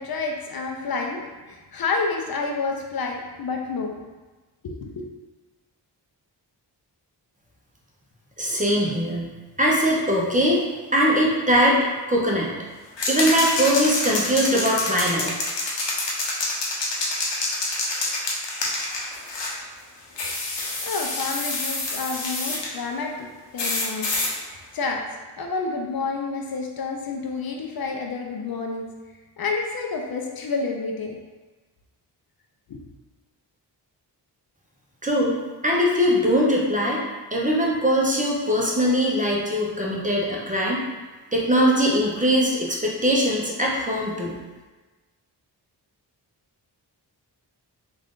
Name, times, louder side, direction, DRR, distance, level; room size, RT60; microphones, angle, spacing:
voice 1, 0.0-4.0 4.6-5.1 20.8-24.1 24.7-25.0 25.4-28.9 29.4-31.2 32.7-32.8, left 4 dB, 55° left, 1 dB, 0.5 m, -29 dB
voice 2, 8.4-9.3 9.6-10.6 10.9-12.5 13.1-15.4 35.0-35.3 35.6-37.0 37.3-40.8 41.3-44.4, equal, 20° right, -3 dB, 0.7 m, -21 dB
sound 1, 13.0-19.6 20.2-22.7 23.6-24.3, left 2 dB, 80° left, 0.8 m, -27 dB
3.3 x 2.5 x 3.6 m, 1.2 s
wide cardioid pair, 85°, 43 cm